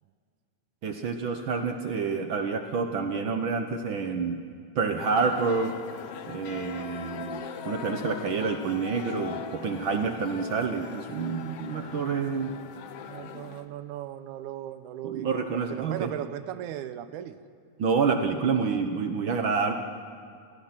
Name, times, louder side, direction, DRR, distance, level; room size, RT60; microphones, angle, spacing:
voice 1, 0.8-4.4 4.7-5.7 6.3-7.4 7.6-12.5 15.0-16.1 17.8-19.7, right 5 dB, 65° right, 6 dB, 1.2 m, -28 dB
sound 1, 5.0-13.7, left 8 dB, 65° left, 1.6 m, -40 dB
voice 2, 13.1-15.3 15.7-17.4 18.6-18.8, right 12 dB, 80° right, 12 dB, 2.2 m, -37 dB
27.5 x 19.0 x 5.9 m, 2.2 s
omnidirectional pair, 3.5 m